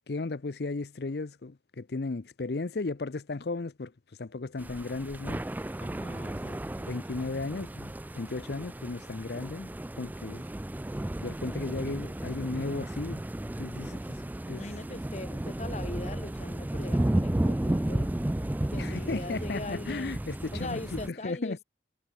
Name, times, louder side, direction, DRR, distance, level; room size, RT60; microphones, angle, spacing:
voice 1, 0.1-5.4 5.7-5.8 6.9-9.7 10.0-10.5 11.2-13.2 13.6-14.8 18.8-21.6, left 3 dB, 60° left, 0.6 m, -35 dB
sound 1, 4.6-21.1, right 1 dB, 10° right, 0.3 m, -33 dB
voice 2, 5.8-7.0 10.3-10.4 13.9-14.0 14.5-18.1 18.6-20.2 20.5-21.6, left 2 dB, 35° left, 1.0 m, -41 dB
head